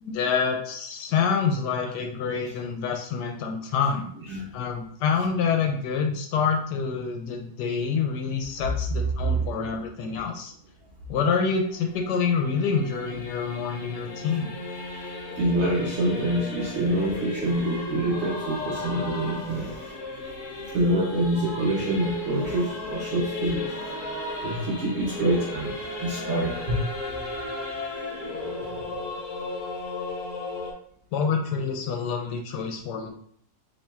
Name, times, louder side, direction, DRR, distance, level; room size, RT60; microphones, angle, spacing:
voice 1, 0.0-4.1 4.5-10.5 11.1-14.5 31.1-33.1, left 6 dB, 85° left, 3 dB, 1.2 m, -27 dB
Singing / Musical instrument, 11.3-30.7, left 2 dB, 55° left, 1.3 m, -35 dB
voice 2, 15.3-19.9 20.6-26.8, right 1 dB, 55° right, -2 dB, 0.8 m, -26 dB
7.0 x 2.9 x 2.3 m, 0.63 s
omnidirectional pair, 1.8 m